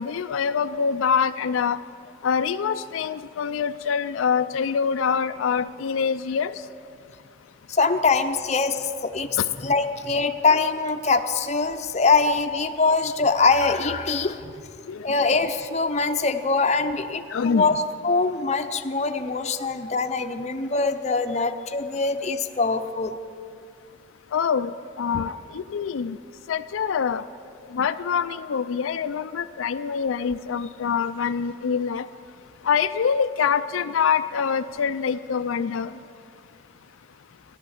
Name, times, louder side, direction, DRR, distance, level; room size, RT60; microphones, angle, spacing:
voice 1, 0.0-6.7 7.0-7.1 9.4-9.5 14.8-15.4 17.3-17.7 24.3-26.2 26.5-27.3 27.6-36.1, left 6 dB, 85° left, 11 dB, 0.4 m, -25 dB
voice 2, 7.7-9.3 9.6-14.5 15.0-17.8 18.0-23.2, left 4 dB, 35° left, 7 dB, 0.6 m, -23 dB
14.0 x 11.0 x 7.2 m, 2.3 s
head